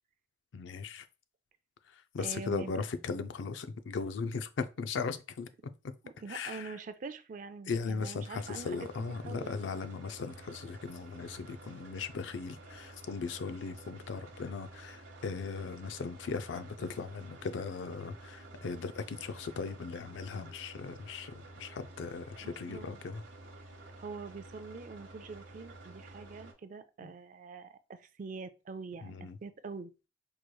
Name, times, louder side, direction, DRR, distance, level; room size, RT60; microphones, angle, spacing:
voice 1, 0.5-1.1 2.1-5.5 6.3-6.7 7.7-23.2 27.0-27.1 29.0-29.4, left 5 dB, 75° left, 0.4 m, -38 dB
voice 2, 2.2-2.7 6.0-8.9 9.2-9.6 22.4-23.0 24.0-29.1 29.4-29.9, right 4 dB, 45° right, 0.4 m, -44 dB
sound 1, 8.3-26.5, right 2 dB, 90° right, 1.0 m, -51 dB
4.6 x 3.1 x 2.2 m
head